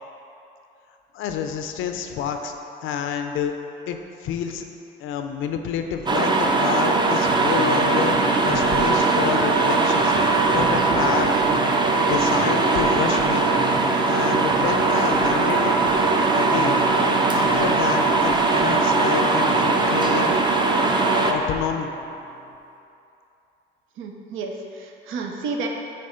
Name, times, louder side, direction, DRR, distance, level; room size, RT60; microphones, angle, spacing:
voice 1, 1.1-2.5 2.8-3.5 3.9-4.7 5.0-11.3 11.6-11.7 12.0-13.5 14.1-16.8 17.3-20.3 21.3-21.9, left 7 dB, 85° left, 6 dB, 0.5 m, -28 dB
sound 1, 6.1-21.3, right 3 dB, 25° right, 0.5 m, -20 dB
sound 2, 7.5-22.6, right 1 dB, 40° right, 1.0 m, -36 dB
voice 2, 24.0-25.7, right 4 dB, 85° right, 2 dB, 0.6 m, -31 dB
6.8 x 3.4 x 4.9 m, 2.7 s
cardioid pair, 90°, 20 cm